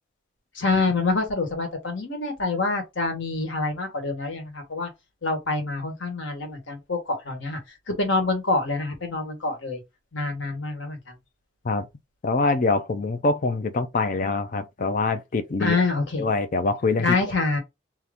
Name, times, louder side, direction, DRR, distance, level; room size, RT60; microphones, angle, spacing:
voice 1, 0.5-4.9 5.2-7.6 7.9-9.8 10.1-11.1 15.6-16.2 17.0-17.6, left 3 dB, 70° left, 1.2 m, -26 dB
voice 2, 12.2-15.7 16.2-17.1, left 3 dB, 40° left, 0.4 m, -24 dB
2.8 x 2.5 x 3.4 m
head